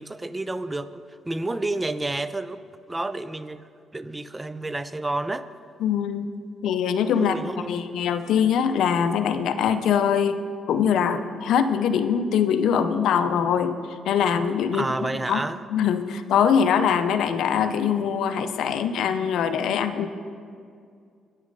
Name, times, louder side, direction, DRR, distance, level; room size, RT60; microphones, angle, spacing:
voice 1, 0.0-2.6 2.9-3.6 3.9-5.5 7.1-7.9 14.7-15.6, right 2 dB, 15° right, 13 dB, 0.3 m, -30 dB
voice 2, 5.8-6.3 6.6-10.4 10.7-13.7 14.1-14.9 15.3-15.4 15.7-20.1, left 7 dB, 80° left, 10 dB, 0.5 m, -23 dB
9.1 x 6.3 x 5.3 m, 2.3 s
cardioid pair, 90°, 0 cm